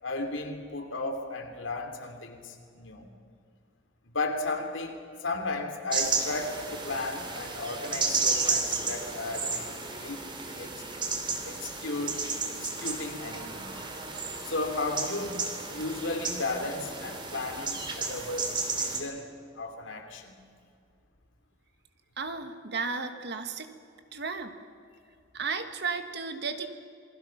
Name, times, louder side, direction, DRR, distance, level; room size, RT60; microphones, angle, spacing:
voice 1, 0.0-3.1 4.0-10.7 11.4-12.2 12.5-13.7 14.4-19.3 19.6-20.4, left 2 dB, 90° left, 4 dB, 2.8 m, -35 dB
sound 1, 5.9-19.0, right 4 dB, 25° right, 2.5 m, -33 dB
voice 2, 22.2-23.7 24.1-24.6 25.3-26.7, right 5 dB, 60° right, 7 dB, 1.6 m, -34 dB
27.5 x 21.0 x 5.9 m, 2.3 s
head